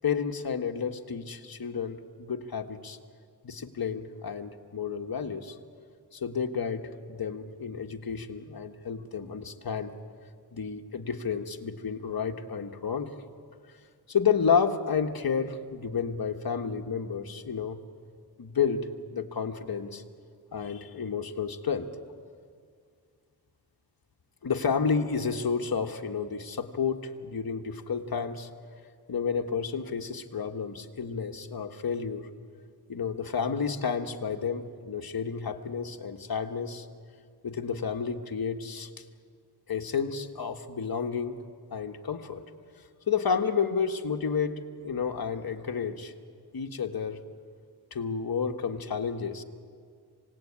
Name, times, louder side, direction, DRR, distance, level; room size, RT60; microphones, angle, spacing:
voice 1, 0.0-3.0 3.4-5.6 6.1-9.9 10.5-13.1 14.1-17.8 18.4-18.8 19.1-20.0 20.5-21.9 24.4-28.5 29.1-32.3 32.9-36.9 37.4-39.0 39.7-41.4 41.7-42.4 43.1-46.1 46.5-47.2 47.9-49.4, left 6 dB, 60° left, 4 dB, 1.5 m, -31 dB
27.0 x 18.0 x 8.8 m, 2.1 s
wide cardioid pair, 110°, 41 cm